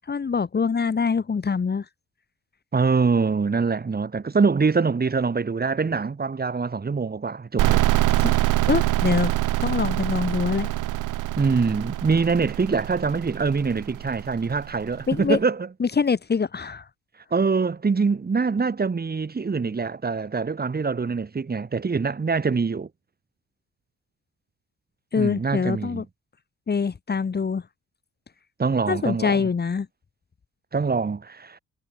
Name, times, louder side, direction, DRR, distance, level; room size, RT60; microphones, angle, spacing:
voice 1, 0.1-1.8 8.2-8.3 8.7-9.3 9.6-10.7 15.1-15.4 15.8-16.8 25.1-26.0 26.7-27.6 28.9-29.9, left 5 dB, 35° left, 2.2 m, -24 dB
voice 2, 2.7-7.8 11.4-15.7 17.3-22.9 25.1-26.1 28.6-29.5 30.7-31.6, right 4 dB, 30° right, 4.3 m, -24 dB
sound 1, 7.6-15.1, right 16 dB, 90° right, 3.2 m, -25 dB
cardioid pair, 90°, 30 cm